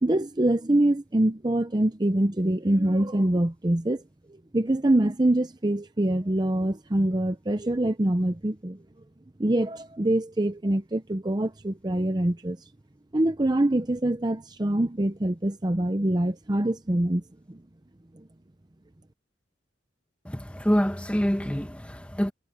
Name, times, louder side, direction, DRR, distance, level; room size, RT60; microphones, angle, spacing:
voice 1, 0.0-4.0 4.5-8.8 9.4-12.6 13.1-17.2 17.5-17.6, right 1 dB, 20° right, 0.7 m, -24 dB
voice 2, 20.2-22.3, equal, 5° left, 1.4 m, -26 dB
head